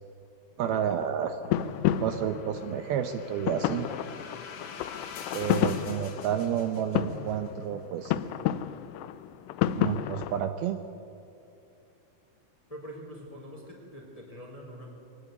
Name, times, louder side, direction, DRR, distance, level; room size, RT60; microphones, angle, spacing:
sound 1, 0.6-10.5, left 11 dB, 90° left, 2.9 m, -31 dB
voice 1, 0.6-1.4 2.0-3.9 5.3-8.2 9.8-10.8, right 9 dB, 75° right, 8 dB, 2.6 m, -30 dB
sound 2, 2.0-7.3, left 6 dB, 60° left, 3.1 m, -45 dB
voice 2, 12.7-14.9, equal, 10° left, -1 dB, 3.6 m, -44 dB
23.0 x 17.0 x 9.4 m, 2.7 s
omnidirectional pair, 4.7 m